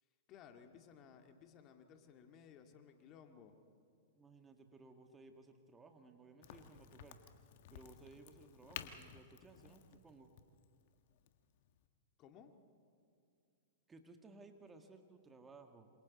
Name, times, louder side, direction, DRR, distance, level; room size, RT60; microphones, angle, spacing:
voice 1, 0.3-3.6 12.2-12.5, left 7 dB, 35° left, 5 dB, 2.1 m, -59 dB
voice 2, 4.2-7.2 7.7-10.3 13.9-15.9, right 3 dB, 15° right, 5 dB, 1.8 m, -59 dB
Crack, 6.4-11.9, left 10 dB, 55° left, 1.5 m, -54 dB
27.0 x 27.0 x 4.2 m, 2.4 s
hypercardioid pair, 110°, 0 cm